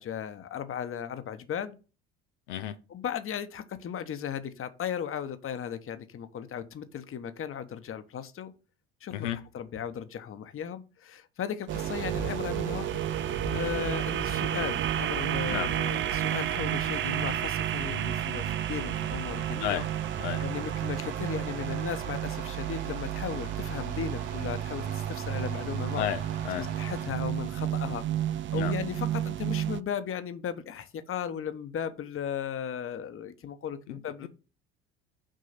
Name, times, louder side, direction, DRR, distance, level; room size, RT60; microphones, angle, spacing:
voice 1, 0.0-1.8 2.9-8.5 9.0-12.9 13.5-19.8 20.4-26.1 26.6-28.0 28.5-34.3, left 8 dB, 40° left, 1.1 m, -36 dB
sound 1, 11.7-29.8, right 11 dB, 35° right, 0.5 m, -31 dB
sound 2, 11.7-27.1, right 5 dB, 70° right, 2.6 m, -40 dB
voice 2, 26.0-26.7 28.5-28.7 33.9-34.3, left 11 dB, 85° left, 0.7 m, -33 dB
6.5 x 3.7 x 5.8 m
hypercardioid pair, 70°, 34 cm